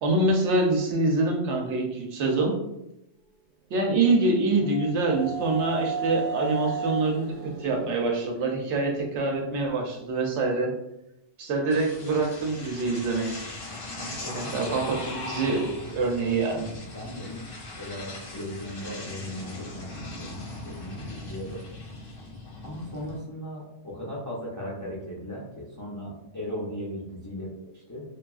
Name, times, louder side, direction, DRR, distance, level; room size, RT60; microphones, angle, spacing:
voice 1, 0.0-2.5 3.7-7.3 7.6-10.7 11.4-13.3 14.3-16.7, right 2 dB, 80° right, 1 dB, 0.9 m, -25 dB
sound 1, 4.3-9.6, right 5 dB, 60° right, 0.6 m, -35 dB
sound 2, 11.7-23.2, left 2 dB, 60° left, 0.7 m, -39 dB
voice 2, 14.0-14.8 16.9-20.4 20.6-21.6 22.6-28.0, equal, 30° left, -6 dB, 0.3 m, -37 dB
2.9 x 2.4 x 2.3 m, 0.88 s
omnidirectional pair, 1.2 m